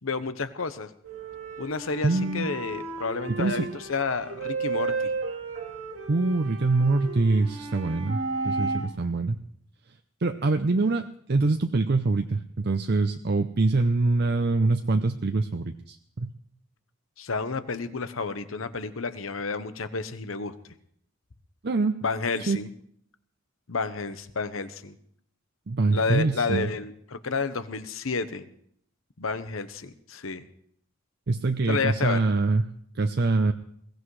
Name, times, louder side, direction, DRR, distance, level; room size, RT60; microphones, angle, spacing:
voice 1, 0.0-0.9 1.6-5.1 17.2-20.5 22.0-22.7 23.7-24.9 25.9-28.5 29.2-30.5 31.7-32.2, left 4 dB, 90° left, 11 dB, 1.0 m, -30 dB
sound 1, 1.0-8.9, right 3 dB, 80° right, 2.7 m, -33 dB
voice 2, 2.0-2.5 3.3-3.7 6.1-9.4 10.2-16.3 21.6-22.0 22.5-22.6 25.7-26.7 31.3-32.6 33.0-33.5, right 3 dB, 55° right, 7 dB, 0.6 m, -24 dB
21.5 x 17.0 x 3.2 m, 0.67 s
head